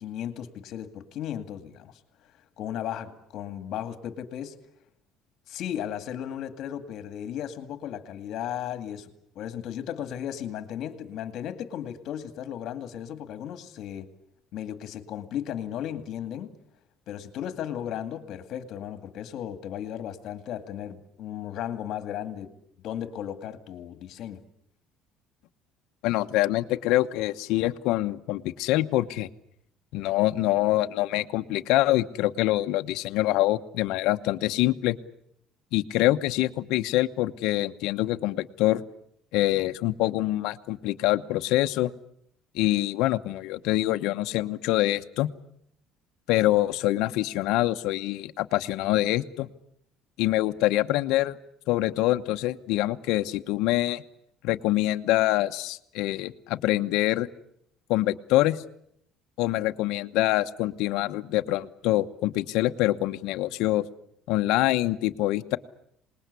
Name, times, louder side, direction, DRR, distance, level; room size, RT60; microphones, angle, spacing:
voice 1, 0.0-1.9 2.6-4.6 5.5-9.1 9.4-14.1 14.5-16.6 17.1-22.5 22.8-24.4, left 10 dB, 50° left, 9 dB, 2.2 m, -35 dB
voice 2, 26.0-29.3 29.9-35.0 35.7-38.8 39.3-41.9 42.5-45.3 46.3-49.5 50.2-51.4 51.7-54.0 54.4-57.3 57.9-58.6 59.4-63.8 64.3-65.6, left 16 dB, 75° left, 8 dB, 1.0 m, -25 dB
26.5 x 20.0 x 8.3 m, 0.72 s
cardioid pair, 165°, 0 cm